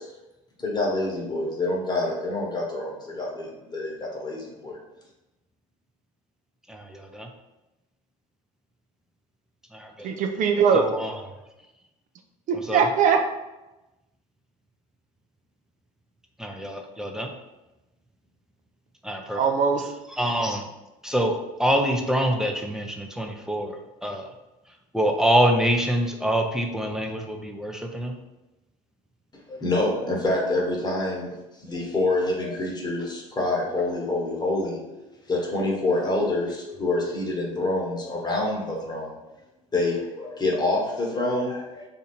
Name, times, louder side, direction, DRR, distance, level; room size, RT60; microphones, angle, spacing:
voice 1, 0.6-4.8 29.5-31.3 31.6-34.8 35.3-39.2 39.7-41.9, left 2 dB, 25° left, -2 dB, 1.2 m, -26 dB
voice 2, 6.7-7.3 9.7-10.1 10.7-11.1 12.7-12.9 16.4-17.3 19.0-19.4 20.1-20.7 21.0-24.3 24.9-28.1, equal, 5° right, 3 dB, 0.6 m, -25 dB
voice 3, 10.0-10.9 12.5-13.2 19.3-19.9, right 6 dB, 50° right, 5 dB, 0.6 m, -21 dB
2.6 x 2.6 x 4.3 m, 1.0 s
hypercardioid pair, 75°, 17 cm